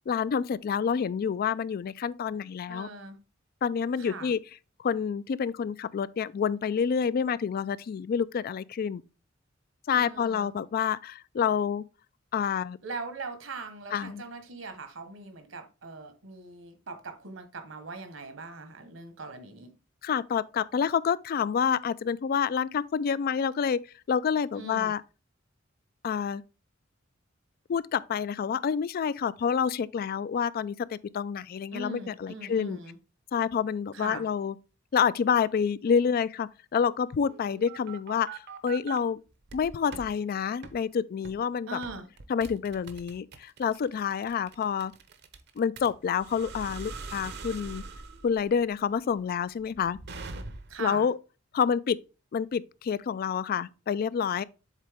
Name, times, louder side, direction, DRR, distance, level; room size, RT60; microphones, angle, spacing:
voice 1, 0.1-2.9 3.6-4.4 4.8-9.0 9.9-11.8 12.3-12.8 13.9-14.2 20.0-23.8 24.1-25.0 26.0-26.4 27.7-32.8 33.3-34.6 34.9-39.2 39.5-41.8 42.3-44.9 45.6-47.8 48.2-50.0 50.8-51.2 51.5-52.0 52.3-54.4, left 7 dB, 50° left, 0.3 m, -28 dB
voice 2, 2.7-3.2 4.0-4.3 9.9-10.5 12.8-19.7 24.5-24.9 31.7-33.0 33.9-34.3 41.7-42.1 50.7-51.1, right 3 dB, 75° right, 1.2 m, -41 dB
sound 1, 37.2-39.0 39.5-40.1 40.6-40.8 41.2-41.5 41.8-50.9, right 4 dB, 55° right, 0.7 m, -43 dB
7.3 x 3.9 x 3.4 m
head